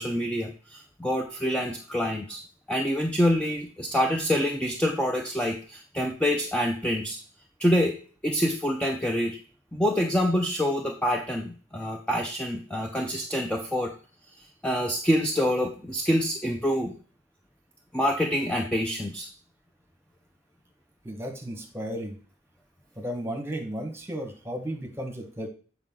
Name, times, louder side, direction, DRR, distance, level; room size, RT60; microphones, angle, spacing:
voice 1, 0.0-2.4 2.7-7.2 7.6-9.4 9.7-13.9 14.6-16.9 17.9-19.3, equal, 5° left, 1 dB, 0.6 m, -26 dB
voice 2, 21.0-22.2 23.0-25.5, equal, 15° right, 3 dB, 1.4 m, -34 dB
7.8 x 4.7 x 3.7 m, 0.40 s
head